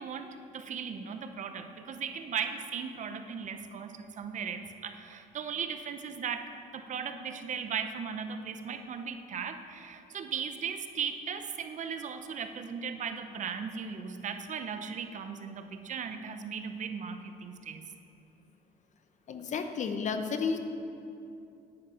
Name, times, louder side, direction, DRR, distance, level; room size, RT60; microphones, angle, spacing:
voice 1, 0.0-17.9, right 6 dB, 45° right, 8 dB, 0.7 m, -37 dB
voice 2, 19.3-20.6, left 5 dB, 45° left, 7 dB, 0.9 m, -32 dB
9.9 x 9.1 x 5.6 m, 2.7 s
cardioid pair, 110°, 17 cm